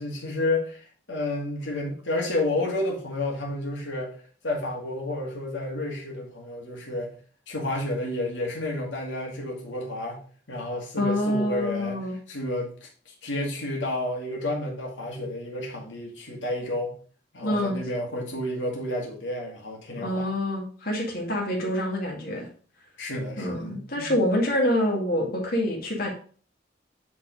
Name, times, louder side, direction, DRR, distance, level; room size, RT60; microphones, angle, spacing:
voice 1, 0.0-4.1 4.4-7.1 7.5-10.2 10.5-17.0 17.3-20.3 23.0-24.2, left 1 dB, 85° left, -1 dB, 2.4 m, -31 dB
voice 2, 11.0-12.1 17.4-17.8 20.0-22.5 23.4-26.1, left 1 dB, 55° left, -2 dB, 2.2 m, -26 dB
9.3 x 4.1 x 5.2 m, 0.43 s
head